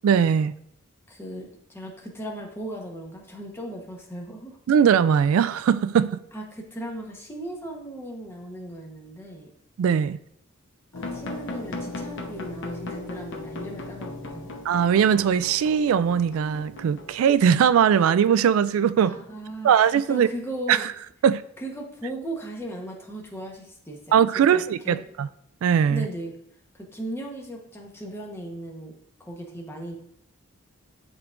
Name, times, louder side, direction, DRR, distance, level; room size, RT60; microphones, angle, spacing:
voice 1, 0.0-0.5 4.7-6.2 9.8-10.2 14.7-19.1 19.6-20.3 20.7-20.8 21.2-21.4 24.1-25.3 25.6-26.1, right 8 dB, 85° right, 0.3 m, -20 dB
voice 2, 1.1-4.6 6.3-9.5 10.9-14.6 19.0-19.7 20.1-20.9 21.6-25.0 25.9-26.4 26.7-28.9 29.2-29.9, right 1 dB, 10° left, 1.0 m, -37 dB
sound 1, 10.9-17.7, left 2 dB, 65° left, 0.9 m, -37 dB
10.5 x 3.7 x 2.5 m
head